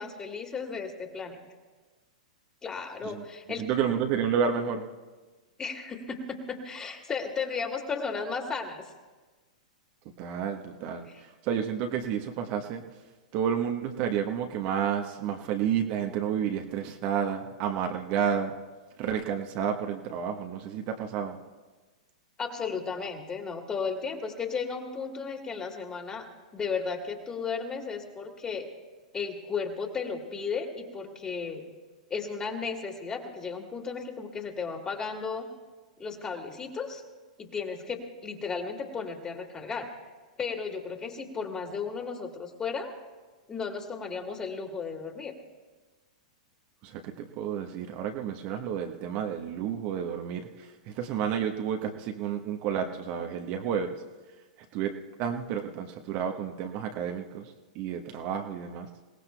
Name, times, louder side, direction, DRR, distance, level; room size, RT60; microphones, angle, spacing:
voice 1, 0.0-1.4 2.6-3.7 5.6-8.8 11.1-11.2 22.4-28.7 29.1-31.6 32.1-35.5 36.0-37.0 37.4-39.9 40.4-42.9 43.5-45.3, left 5 dB, 20° left, 2 dB, 2.3 m, -34 dB
voice 2, 3.6-4.9 10.2-12.8 13.3-18.5 19.0-21.4 46.8-54.0 54.7-58.9, right 8 dB, 40° right, 4 dB, 1.1 m, -31 dB
27.5 x 18.0 x 2.3 m, 1.3 s
figure-of-eight pair, 100°, 4 cm